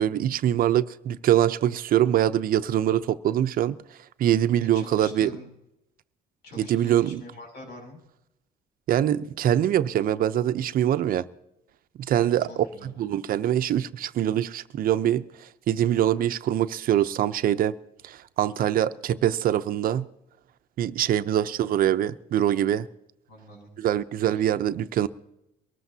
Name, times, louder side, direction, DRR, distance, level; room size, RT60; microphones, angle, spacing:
voice 1, 0.0-3.8 4.2-5.3 6.6-7.2 8.9-11.2 12.0-15.3 15.7-17.7 18.0-20.1 20.8-22.9 23.8-25.1, right 11 dB, 60° right, 0.7 m, -24 dB
voice 2, 4.7-5.5 6.4-8.0 12.5-12.9 21.3-21.5 23.3-23.7 24.3-24.4, left 2 dB, 75° left, 6.7 m, -45 dB
23.5 x 13.5 x 2.8 m
cardioid pair, 110°, 17 cm